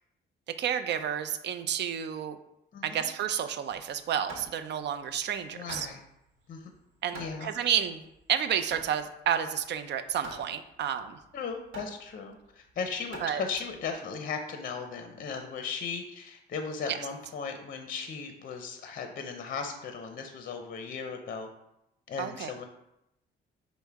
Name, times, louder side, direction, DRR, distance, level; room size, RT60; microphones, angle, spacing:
voice 1, 0.6-2.4 2.8-5.9 7.0-8.0 8.3-11.2 13.2-13.4 16.9-17.0 22.2-22.5, right 9 dB, 60° right, 10 dB, 0.4 m, -30 dB
voice 2, 2.7-3.1 5.5-6.0 6.5-6.7 7.1-7.7 11.3-21.5 22.1-22.7, left 5 dB, 45° left, 5 dB, 0.6 m, -37 dB
Hammer, 3.7-13.9, right 2 dB, 85° right, 1.0 m, -48 dB
5.4 x 2.1 x 4.6 m, 0.84 s
cardioid pair, 90°, 20 cm